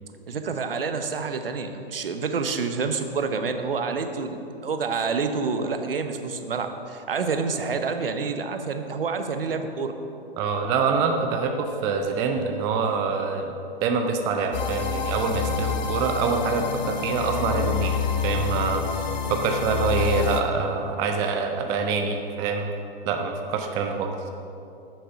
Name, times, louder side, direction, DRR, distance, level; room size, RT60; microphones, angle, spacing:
voice 1, 0.3-9.9, right 4 dB, 70° right, 7 dB, 0.9 m, -28 dB
voice 2, 10.4-13.5 13.8-18.0 18.2-18.9 19.3-22.7 23.0-24.1, right 5 dB, 10° right, 4 dB, 0.3 m, -25 dB
sound 1, 14.5-20.4, left 7 dB, 50° left, 0.8 m, -28 dB
9.2 x 6.7 x 5.6 m, 2.7 s
figure-of-eight pair, 110°, 30 cm